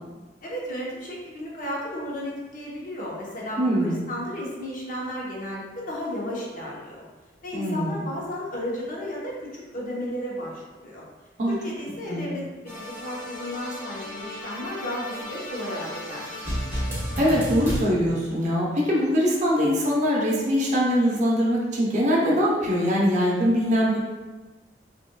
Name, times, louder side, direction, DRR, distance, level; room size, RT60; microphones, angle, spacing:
voice 1, 0.4-7.0 7.4-11.0 11.5-16.4, left 1 dB, 50° left, -4 dB, 0.9 m, -34 dB
voice 2, 3.6-4.0 7.5-8.0 11.4-11.5 12.1-12.3 17.2-24.0, equal, 45° right, -4 dB, 0.8 m, -22 dB
sound 1, 12.7-17.8, equal, 15° right, 0.9 m, -33 dB
5.4 x 2.5 x 2.2 m, 1.2 s
head